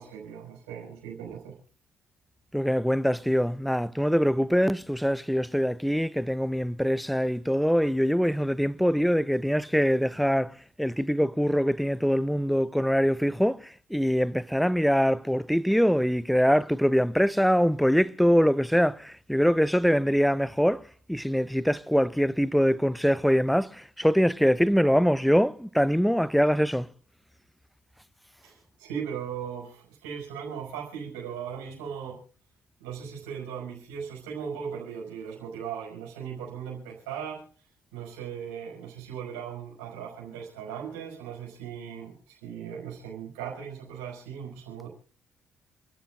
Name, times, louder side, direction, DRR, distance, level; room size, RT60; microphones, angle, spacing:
voice 1, 0.0-1.5 28.4-32.2 32.8-37.5 37.9-44.9, right 7 dB, 70° right, 5.3 m, -38 dB
voice 2, 2.5-13.6 13.9-20.8 21.1-26.9, equal, ahead, 0.7 m, -23 dB
28.0 x 13.0 x 2.4 m
figure-of-eight pair, 45°, 6 cm